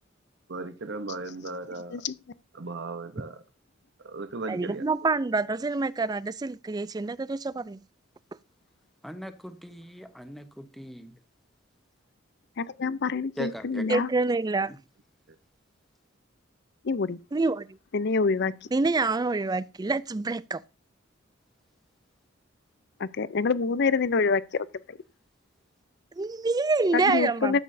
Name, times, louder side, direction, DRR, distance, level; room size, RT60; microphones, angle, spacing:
voice 1, 0.5-2.0 2.5-3.4 4.0-4.9, right 3 dB, 65° right, 0.9 m, -36 dB
voice 2, 4.5-7.8 13.9-14.7 17.3-17.7 18.7-20.6 26.2-27.6, right 3 dB, 20° right, 0.4 m, -26 dB
voice 3, 9.0-11.2 13.4-13.9, equal, ahead, 1.0 m, -40 dB
voice 4, 12.6-14.1 16.8-17.2 17.9-18.6 23.0-25.0 26.9-27.6, left 4 dB, 60° left, 0.6 m, -26 dB
12.5 x 8.4 x 2.7 m
head